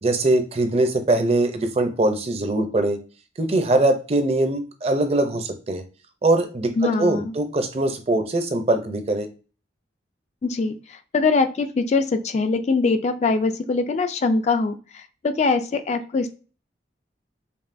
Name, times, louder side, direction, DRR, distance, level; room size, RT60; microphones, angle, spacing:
voice 1, 0.0-3.0 3.4-5.8 6.2-9.3, right 2 dB, 35° right, 7 dB, 0.5 m, -22 dB
voice 2, 6.8-7.3 10.4-16.3, left 4 dB, 40° left, 8 dB, 0.3 m, -23 dB
5.3 x 2.2 x 2.6 m, 0.36 s
head